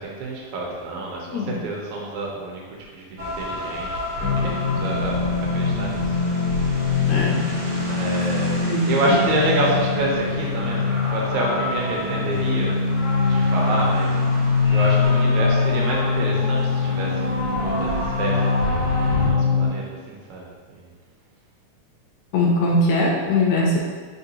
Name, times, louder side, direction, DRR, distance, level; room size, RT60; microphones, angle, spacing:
voice 1, 0.0-2.6 2.9-5.2 5.5-6.4 7.9-8.6 8.9-12.8 13.3-14.2 14.7-20.9, right 2 dB, 75° right, -2 dB, 2.0 m, -28 dB
voice 2, 1.3-1.6 7.1-7.5 8.6-9.2 22.3-23.8, left 2 dB, 80° left, -2 dB, 1.8 m, -21 dB
sound 1, 3.2-19.3, left 1 dB, 50° right, 1.9 m, -31 dB
sound 2, 4.2-19.7, left 4 dB, 45° left, 1.1 m, -23 dB
4.4 x 3.9 x 2.7 m, 1.5 s
omnidirectional pair, 3.5 m